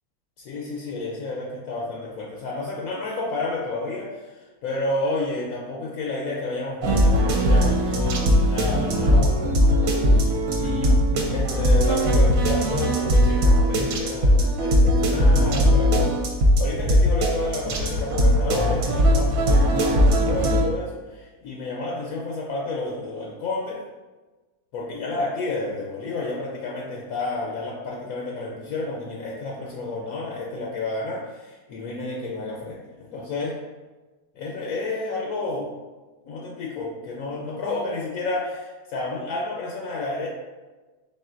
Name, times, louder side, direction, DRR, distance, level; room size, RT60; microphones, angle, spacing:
voice 1, 0.4-10.0 10.3-16.1 16.6-23.8 24.7-33.6 34.3-35.7 36.3-40.3, left 2 dB, 70° left, -2 dB, 1.1 m, -31 dB
sound 1, 6.8-20.6, equal, 65° right, 1.0 m, -19 dB
4.3 x 3.8 x 2.5 m, 1.2 s
omnidirectional pair, 1.7 m